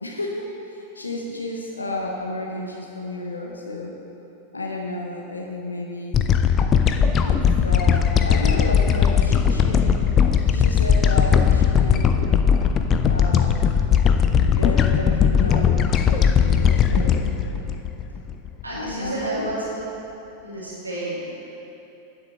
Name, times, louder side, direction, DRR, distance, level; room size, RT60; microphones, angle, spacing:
voice 1, 0.0-3.9 4.5-6.3 7.2-10.0 10.5-12.2 13.1-13.6 14.4-17.3 18.7-19.6, left 2 dB, 80° left, 0 dB, 0.9 m, -32 dB
sound 1, 6.1-18.6, left 7 dB, 30° left, 0.5 m, -18 dB
voice 2, 18.6-19.6 20.4-21.4, right 2 dB, 80° right, -7 dB, 2.2 m, -30 dB
9.7 x 7.3 x 6.4 m, 2.9 s
figure-of-eight pair, 90°, 0 cm